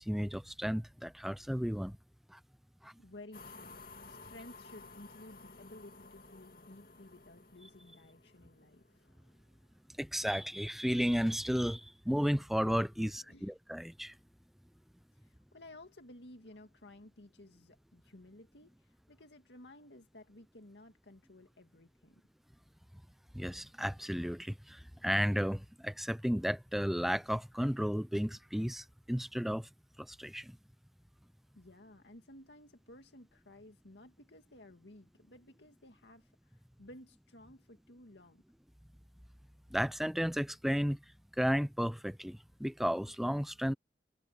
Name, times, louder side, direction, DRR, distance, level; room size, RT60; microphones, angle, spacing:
voice 1, 0.0-2.0 2.3-2.4 2.8-2.9 10.0-14.1 23.3-29.7 30.0-30.6 39.7-41.0 41.4-43.7, equal, ahead, 0.5 m, -33 dB
voice 2, 3.0-8.9 13.2-13.5 15.1-22.2 31.5-38.4, left 1 dB, 80° left, 2.2 m, -55 dB
sound 1, 3.3-9.6, left 3 dB, 55° left, 2.4 m, -54 dB
head